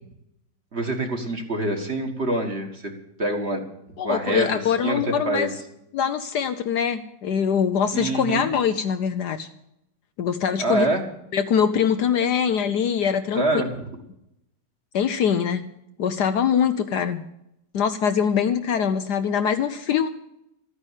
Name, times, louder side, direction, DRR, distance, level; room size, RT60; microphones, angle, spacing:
voice 1, 0.7-2.9 3.2-3.6 4.0-5.5 7.9-8.5 10.6-11.1 13.4-13.9, right 2 dB, 35° right, 3 dB, 1.9 m, -26 dB
voice 2, 4.0-5.5 5.9-9.5 10.2-10.9 11.3-13.4 14.9-15.6 16.0-17.2 17.7-20.1, left 7 dB, 65° left, 9 dB, 1.2 m, -23 dB
13.5 x 9.8 x 8.1 m, 0.82 s
omnidirectional pair, 2.1 m